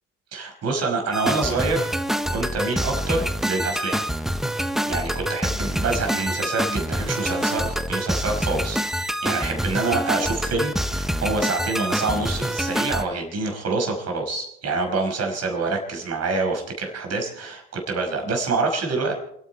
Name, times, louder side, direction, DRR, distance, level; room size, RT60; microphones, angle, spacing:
voice 1, 0.3-1.9 2.3-4.0 4.9-19.1, right 3 dB, 55° right, 2 dB, 5.5 m, -26 dB
sound 1, 1.1-13.0, equal, ahead, 1.0 m, -26 dB
28.0 x 9.6 x 4.6 m, 0.79 s
supercardioid pair, 70°, 30 cm